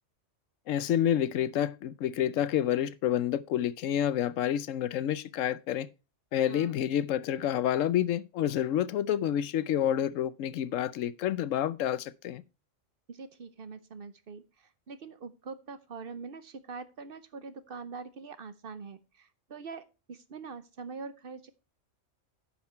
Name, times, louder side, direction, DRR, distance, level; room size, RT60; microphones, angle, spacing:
voice 1, 0.7-5.9 6.3-12.4, left 10 dB, 85° left, 1.0 m, -29 dB
voice 2, 13.1-21.5, right 4 dB, 50° right, 0.9 m, -44 dB
9.9 x 5.9 x 4.3 m
omnidirectional pair, 1.3 m